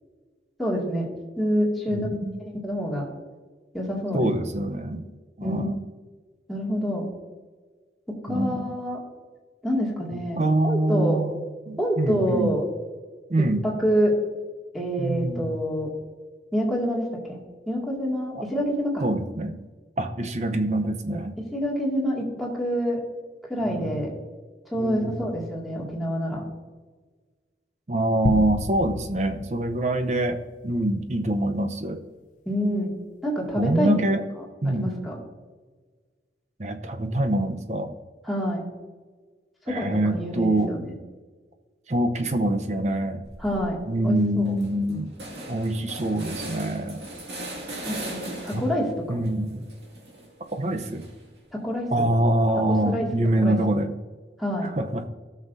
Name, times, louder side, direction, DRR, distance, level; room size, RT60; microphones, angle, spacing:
voice 1, 0.6-1.1 1.4-2.1 2.4-3.0 3.7-4.3 5.4-5.7 6.5-7.0 8.1-9.0 9.6-11.2 11.8-12.6 13.4-14.1 14.7-15.9 16.5-17.4 17.7-19.1 21.4-23.0 23.5-24.1 24.7-26.4 32.5-32.9 33.2-34.0 34.7-35.2 38.2-38.6 39.7-41.0 43.4-43.8 44.0-44.5 47.9-49.2 51.5-52.1 52.7-53.1 53.4-53.6 54.4-54.7, equal, ahead, -3 dB, 2.1 m, -27 dB
voice 2, 1.9-2.4 4.1-5.1 5.4-5.8 8.3-8.7 10.4-11.4 11.7-12.5 13.3-13.6 15.0-15.5 18.3-18.4 19.0-19.6 20.0-21.3 23.6-24.0 24.8-25.3 27.9-32.0 33.6-34.2 34.6-34.9 36.6-37.9 39.7-40.7 41.9-43.2 43.9-45.1 45.5-47.0 47.7-47.8 48.5-48.6 49.1-49.7 50.5-51.0 51.9-53.9 54.8-55.1, right 1 dB, 40° right, 7 dB, 0.7 m, -25 dB
sound 1, 28.2-30.8, left 3 dB, 45° left, 0.4 m, -32 dB
sound 2, 43.2-43.7 44.1-44.2 44.4-48.9 49.2-51.4, right 1 dB, 80° right, 2.2 m, -39 dB
16.5 x 6.4 x 2.6 m, 1.4 s
head